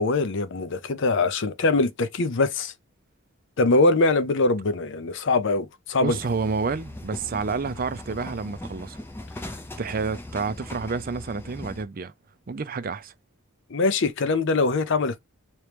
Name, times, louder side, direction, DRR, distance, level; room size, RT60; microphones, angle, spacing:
voice 1, 0.0-2.7 3.6-6.2 13.7-15.2, left 3 dB, 60° left, 0.6 m, -22 dB
voice 2, 6.0-9.0 9.8-12.1 12.5-13.1, right 4 dB, 40° right, 0.5 m, -29 dB
sound 1, 6.1-11.8, left 1 dB, 10° left, 0.6 m, -39 dB
3.0 x 3.0 x 3.4 m
head